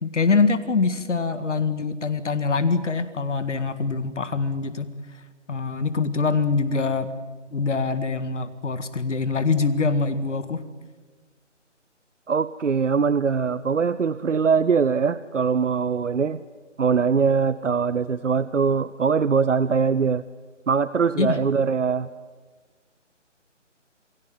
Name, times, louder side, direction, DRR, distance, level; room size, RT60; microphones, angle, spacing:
voice 1, 0.0-4.9 5.5-7.1 7.5-10.6 21.2-21.4, left 4 dB, 70° left, 12 dB, 1.9 m, -24 dB
voice 2, 12.3-16.4 16.8-20.2 20.7-22.1, right 5 dB, 75° right, 16 dB, 0.9 m, -22 dB
28.0 x 17.5 x 9.6 m, 1.4 s
figure-of-eight pair, 150°, 37 cm